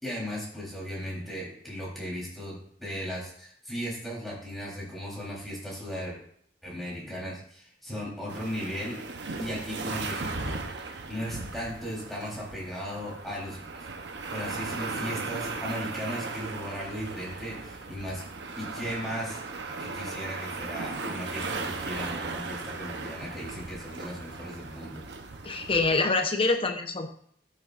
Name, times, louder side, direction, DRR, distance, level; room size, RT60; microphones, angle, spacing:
voice 1, 0.0-6.2 6.6-9.0 9.4-10.6 11.1-13.9 14.3-18.2 18.6-19.4 19.8-25.0, equal, ahead, -6 dB, 3.9 m, -36 dB
sound 1, 8.3-26.0, right 3 dB, 80° right, 0.9 m, -37 dB
voice 2, 25.4-27.1, left 3 dB, 35° left, 5 dB, 1.0 m, -25 dB
12.5 x 7.5 x 2.6 m, 0.62 s
head